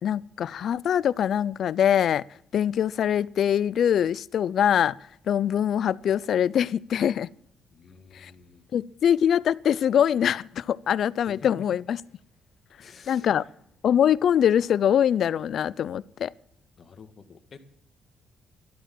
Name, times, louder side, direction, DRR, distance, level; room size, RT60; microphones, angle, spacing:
voice 1, 0.0-2.2 2.5-5.0 5.3-7.3 8.1-8.3 8.7-12.0 13.1-13.4 13.8-16.3, left 9 dB, 65° left, 0.5 m, -23 dB
voice 2, 7.7-8.7 11.3-11.7 12.8-13.5 16.8-17.7, left 5 dB, 50° left, 1.9 m, -49 dB
13.0 x 12.0 x 7.6 m
cardioid pair, 90°, 0 cm